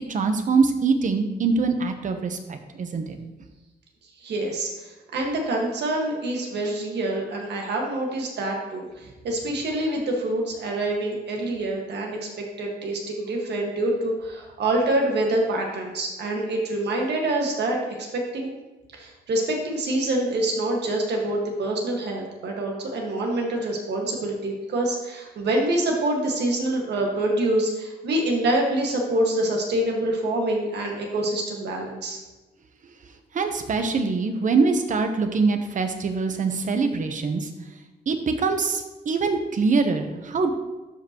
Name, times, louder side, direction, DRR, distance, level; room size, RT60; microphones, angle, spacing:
voice 1, 0.1-3.2 33.3-37.5 38.1-40.5, right 4 dB, 50° right, 7 dB, 0.9 m, -23 dB
voice 2, 4.2-18.5 18.9-32.2, right 1 dB, 80° right, 0 dB, 1.7 m, -26 dB
12.0 x 5.2 x 3.0 m, 1.1 s
wide cardioid pair, 135°, 17 cm